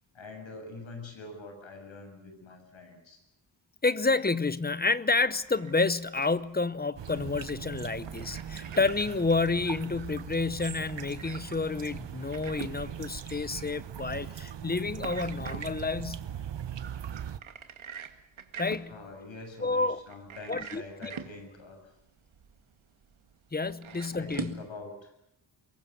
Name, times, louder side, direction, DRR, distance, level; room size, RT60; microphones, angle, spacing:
voice 1, 0.1-3.2 18.9-21.8 23.9-25.1, left 3 dB, 75° left, 7.2 m, -45 dB
voice 2, 3.8-16.3 18.6-18.9 19.6-20.0 20.5-21.1 23.5-24.6, left 3 dB, 20° left, 0.8 m, -29 dB
sound 1, 5.2-24.7, right 7 dB, 85° right, 2.1 m, -46 dB
sound 2, 7.0-17.4, right 9 dB, 65° right, 1.2 m, -40 dB
24.5 x 22.0 x 6.8 m
wide cardioid pair, 165°, 47 cm